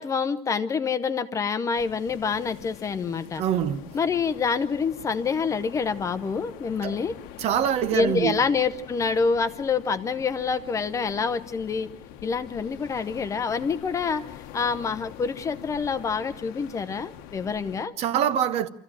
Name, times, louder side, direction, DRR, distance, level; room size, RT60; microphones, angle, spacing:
voice 1, 0.0-3.4 3.9-7.2 7.9-11.9 12.2-14.2 14.5-17.9, left 5 dB, 20° left, 0.7 m, -27 dB
sound 1, 1.7-17.9, left 11 dB, 85° left, 1.2 m, -44 dB
voice 2, 3.4-3.9 6.8-7.0 7.4-8.4 18.0-18.7, right 9 dB, 45° right, 0.9 m, -24 dB
26.5 x 14.5 x 7.5 m
cardioid pair, 180°, 15 cm